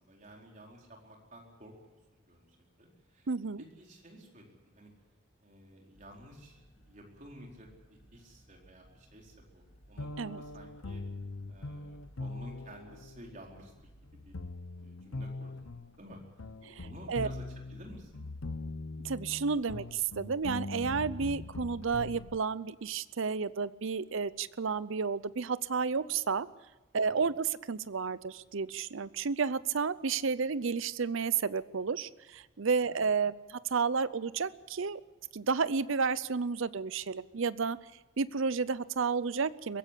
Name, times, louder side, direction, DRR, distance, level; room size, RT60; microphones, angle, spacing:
voice 1, 0.0-2.5 2.8-3.3 3.8-4.9 5.4-7.7 8.1-11.0 11.5-14.3 14.8-16.2 16.8-18.2 27.0-27.2 32.9-33.0, right 1 dB, 35° right, 0 dB, 4.5 m, -53 dB
voice 2, 3.3-3.6 10.2-10.4 16.6-17.3 19.0-26.5 26.9-35.0 35.3-37.8 38.2-39.8, right 5 dB, 70° right, 16 dB, 0.6 m, -31 dB
sound 1, 5.9-14.5, right 1 dB, 55° left, 2.9 m, -60 dB
sound 2, 10.0-22.4, left 2 dB, 80° left, 0.9 m, -42 dB
23.0 x 16.0 x 8.5 m, 1.1 s
head